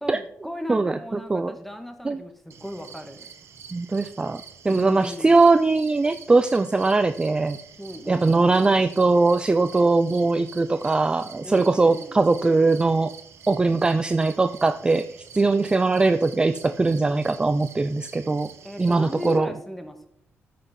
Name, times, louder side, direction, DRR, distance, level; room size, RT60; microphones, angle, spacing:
voice 1, 0.0-3.3 4.7-5.4 7.8-8.5 11.4-12.2 18.6-20.1, left 1 dB, 5° left, 7 dB, 1.4 m, -36 dB
voice 2, 0.7-1.5 2.0-2.2 3.7-7.6 8.1-13.1 13.5-15.1 15.3-18.5 18.8-19.5, right 3 dB, 20° right, 11 dB, 0.4 m, -21 dB
sound 1, 2.5-19.4, right 7 dB, 65° right, 1.1 m, -47 dB
13.5 x 5.9 x 4.3 m, 0.73 s
cardioid pair, 105°, 5 cm